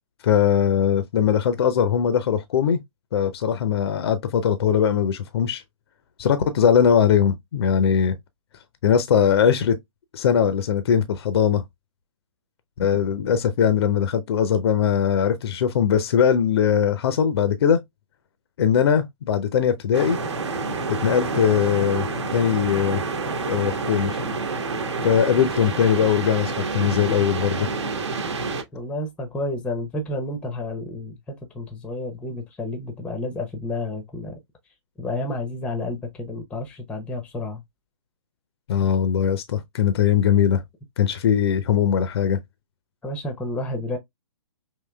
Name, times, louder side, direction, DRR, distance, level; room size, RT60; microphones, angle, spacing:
voice 1, 0.2-2.8 3.1-5.6 6.2-8.2 8.8-9.8 10.1-11.6 12.8-17.8 18.6-20.2 21.0-22.1 22.3-23.0 23.4-24.2 25.0-27.7 38.7-40.6 41.0-42.4, left 8 dB, 50° left, 0.6 m, -20 dB
sound 1, 19.9-28.6, right 3 dB, 55° right, 1.1 m, -28 dB
voice 2, 28.7-34.3 35.0-37.6 43.0-44.0, left 2 dB, 5° left, 0.7 m, -30 dB
5.5 x 2.8 x 2.2 m
figure-of-eight pair, 125°, 17 cm